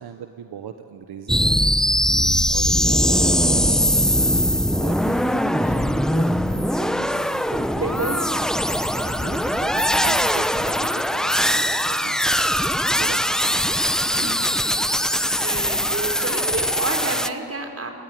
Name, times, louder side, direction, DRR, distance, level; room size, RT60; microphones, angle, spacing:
voice 1, 0.0-2.2 2.5-8.1 8.8-13.9, right 8 dB, 75° right, 7 dB, 1.3 m, -38 dB
sound 1, 1.3-17.3, equal, ahead, 0.8 m, -21 dB
voice 2, 7.7-8.2 9.1-9.6 14.0-14.3 15.2-17.9, right 3 dB, 40° right, 4 dB, 4.7 m, -30 dB
29.5 x 21.5 x 9.3 m, 2.6 s
cardioid pair, 75°, 39 cm